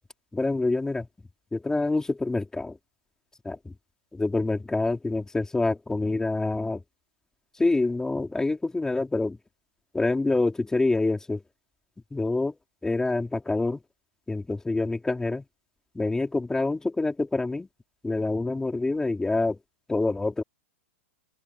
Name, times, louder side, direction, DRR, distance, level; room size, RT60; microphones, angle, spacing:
voice 1, 0.3-1.1 1.5-2.8 3.4-3.6 4.1-6.8 7.6-9.4 9.9-11.4 12.1-12.5 12.8-13.8 14.3-15.4 15.9-17.7 18.0-19.6 19.9-20.4, left 2 dB, 10° left, 4.5 m, -26 dB
open air
hypercardioid pair, 110°, 7 cm